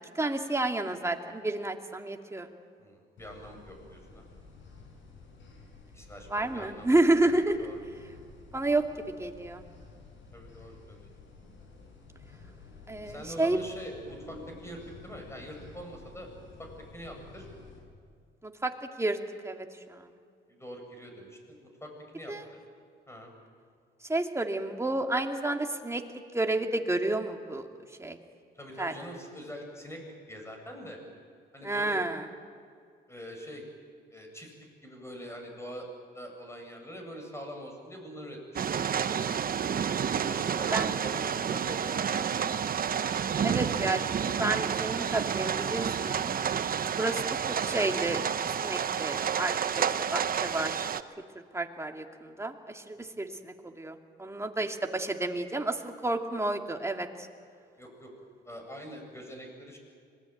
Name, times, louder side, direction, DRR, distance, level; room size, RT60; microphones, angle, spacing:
voice 1, 0.1-2.5 6.3-7.7 8.5-9.6 12.9-13.6 18.4-19.2 19.4-20.1 22.3-22.4 24.0-27.7 28.0-28.2 28.8-28.9 31.6-32.3 40.7-40.9 43.4-46.3 47.0-47.2 47.5-48.2 48.6-50.9 51.5-57.3, right 2 dB, 15° right, 4 dB, 2.4 m, -30 dB
voice 2, 2.8-4.2 5.9-7.8 10.3-11.1 13.0-16.3 16.6-17.5 20.5-22.3 23.1-23.3 28.5-30.0 30.3-31.0 31.5-32.0 33.1-33.6 34.1-34.5 34.8-35.9 36.1-38.8 40.3-42.2 53.0-53.1 57.8-58.1 58.4-59.8, equal, 15° left, 3 dB, 7.8 m, -44 dB
sound 1, 3.2-17.8, left 3 dB, 70° left, 7.2 m, -51 dB
sound 2, 38.6-51.0, right 8 dB, 45° right, 1.0 m, -30 dB
26.0 x 19.5 x 9.3 m, 2.2 s
cardioid pair, 90°, 20 cm